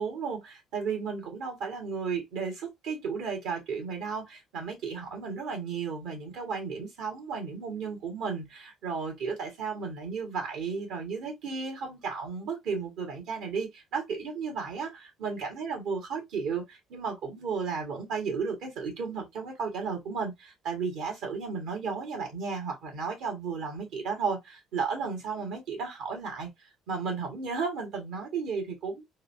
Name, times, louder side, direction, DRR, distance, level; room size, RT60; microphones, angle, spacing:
voice 1, 0.0-26.5 26.9-29.0, right 5 dB, 80° right, 1.6 m, -34 dB
3.8 x 2.3 x 2.6 m
supercardioid pair, 75°, 0 cm